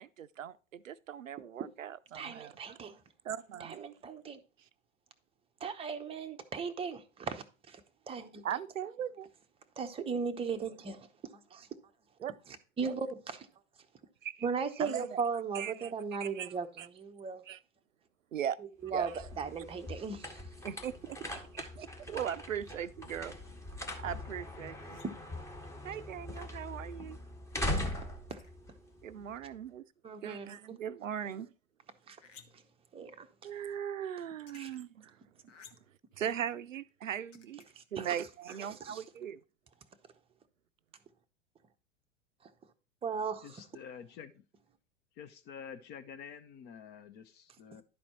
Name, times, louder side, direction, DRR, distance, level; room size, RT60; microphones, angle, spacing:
voice 1, 0.0-2.5 3.2-3.8 8.4-9.3 12.2-12.4 12.8-12.9 14.2-14.5 14.8-15.1 15.5-15.9 16.2-16.9 17.5-17.6 18.3-18.6 18.9-19.2 20.6-21.2 21.5-23.3 24.0-25.0 25.8-27.2 29.0-29.8 30.2-31.5 33.4-35.2 36.2-37.6 37.9-39.4, right 9 dB, 85° right, 0.5 m, -39 dB
voice 2, 1.4-1.7 2.1-3.0 3.6-4.4 5.6-7.8 8.1-8.4 9.8-11.1 11.5-11.7 12.8-13.5 14.4-17.4 18.8-20.4 25.0-25.1 28.3-28.4 30.0-30.8 32.1-32.2 32.9-33.3 34.5-34.7 38.0-38.2 38.7-39.0 43.0-43.5, right 5 dB, 15° right, 0.7 m, -37 dB
sound 1, 18.8-29.6, left 1 dB, 10° left, 1.1 m, -41 dB
sound 2, 24.7-25.3 28.3-28.5 32.2-32.8 34.3-34.8 35.5-36.0 37.3-37.7 38.5-38.6, left 6 dB, 70° left, 1.1 m, -57 dB
voice 3, 43.4-44.4 45.2-47.8, left 7 dB, 25° left, 0.5 m, -48 dB
11.0 x 4.3 x 4.3 m
figure-of-eight pair, 90°, 38 cm